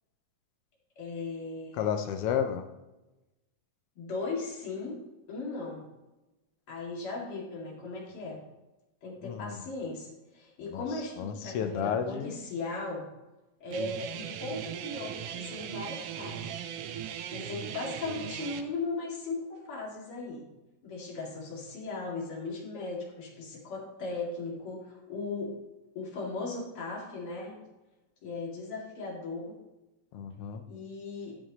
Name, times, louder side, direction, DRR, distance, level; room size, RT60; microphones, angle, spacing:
voice 1, 1.0-1.9 4.0-5.0 5.3-5.9 6.7-8.4 9.0-10.1 10.3-13.1 13.6-16.7 17.3-20.5 20.8-25.5 25.9-27.6 28.2-29.6 30.7-31.4, left 3 dB, 45° left, -3 dB, 3.2 m, -37 dB
voice 2, 1.8-2.7 9.2-9.5 10.7-10.8 11.2-12.3 30.1-30.6, left 8 dB, 80° left, 7 dB, 1.3 m, -31 dB
Guitar, 13.7-18.6, right 9 dB, 85° right, 1.3 m, -38 dB
11.0 x 8.8 x 3.0 m, 1.0 s
omnidirectional pair, 3.5 m